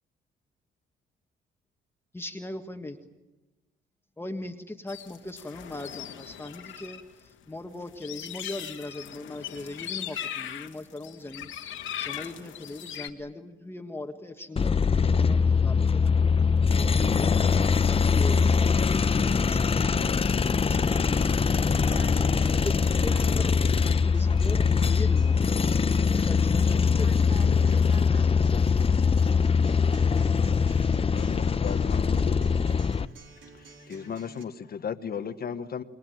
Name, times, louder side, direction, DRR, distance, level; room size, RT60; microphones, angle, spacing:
voice 1, 2.1-3.0 4.2-11.5 12.0-25.8 26.1-27.3, left 2 dB, 10° left, 4 dB, 1.6 m, -40 dB
sound 1, 4.9-7.0 7.3-13.1, left 10 dB, 80° left, 2.0 m, -39 dB
sound 2, 14.6-33.1, left 5 dB, 30° left, 0.8 m, -23 dB
Acoustic guitar, 18.4-34.4, right 4 dB, 75° right, 4.0 m, -50 dB
voice 2, 20.9-22.7 23.1-23.6 26.8-28.4, right 3 dB, 30° right, 5 dB, 4.3 m, -47 dB
voice 3, 31.1-32.9 33.6-35.8, left 7 dB, 50° left, 9 dB, 1.3 m, -36 dB
28.0 x 21.5 x 9.2 m, 1.1 s
cardioid pair, 90°, 20 cm